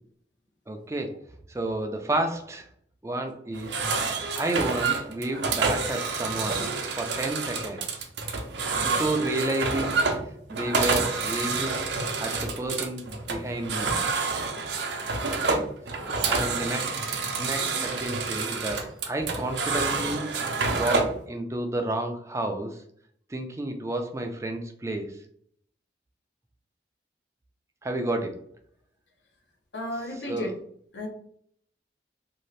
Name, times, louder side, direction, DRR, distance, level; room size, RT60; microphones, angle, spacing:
voice 1, 0.7-1.1 1.5-2.7 3.0-3.8 4.4-8.1 8.8-10.0 10.5-11.7 12.2-13.9 15.4-15.6 16.0-20.3 20.7-22.8 23.3-25.2 27.8-28.4 30.1-30.5, right 1 dB, 15° right, 4 dB, 0.3 m, -31 dB
sound 1, 3.5-21.2, right 4 dB, 85° right, 0.5 m, -28 dB
voice 2, 29.7-30.6 30.9-31.1, left 1 dB, 85° left, 3 dB, 0.7 m, -33 dB
2.7 x 2.4 x 3.1 m, 0.65 s
head